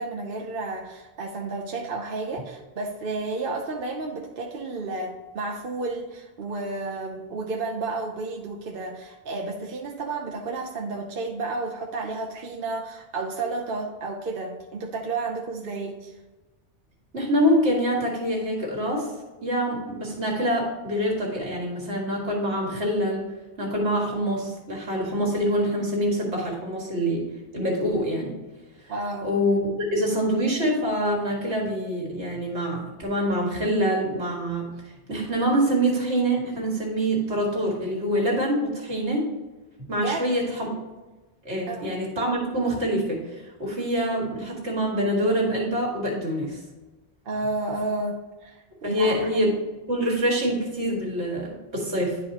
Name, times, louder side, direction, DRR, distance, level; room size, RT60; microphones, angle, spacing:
voice 1, 0.0-16.1 28.9-29.3 39.9-40.3 41.7-41.9 47.2-49.3, right 3 dB, 60° right, 0 dB, 0.9 m, -31 dB
voice 2, 17.1-19.1 19.4-23.2 23.6-27.2 27.5-28.3 29.2-29.6 29.9-34.7 35.1-39.3 39.9-40.7 41.5-43.2 43.6-46.6 48.8-49.5 49.9-52.2, equal, 75° right, -1 dB, 2.2 m, -25 dB
10.5 x 4.8 x 2.9 m, 1.1 s
omnidirectional pair, 1.2 m